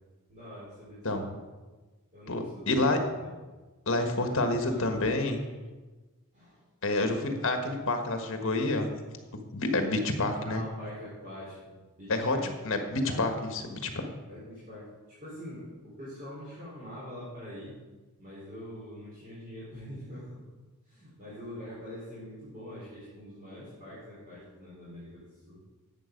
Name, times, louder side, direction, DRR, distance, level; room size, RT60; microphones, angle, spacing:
voice 1, 0.3-1.3 2.1-3.3 4.1-4.4 4.6-4.9 6.3-6.6 10.3-11.7 12.0-12.4 13.0-13.3 14.3-14.9 15.2-17.8 18.2-20.4 20.8-25.6, equal, 35° right, -9 dB, 3.8 m, -44 dB
voice 2, 2.3-3.0 3.9-5.4 6.8-8.9 9.3-10.6 12.1-14.1, left 2 dB, 60° left, 6 dB, 1.4 m, -28 dB
11.5 x 8.1 x 5.2 m, 1.3 s
head